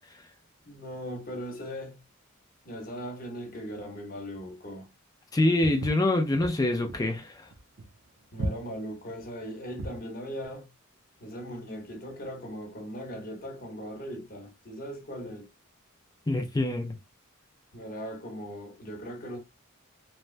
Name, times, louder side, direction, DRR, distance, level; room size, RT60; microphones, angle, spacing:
voice 1, 0.6-2.0 2.6-4.9 8.3-10.7 11.2-15.5 17.7-19.4, equal, 45° left, 0.9 m, -39 dB
voice 2, 5.3-7.5 16.3-17.0, left 1 dB, 20° left, 0.4 m, -25 dB
Walk footsteps, 5.6-10.1, right 1 dB, 60° right, 0.5 m, -37 dB
3.2 x 2.1 x 2.4 m
head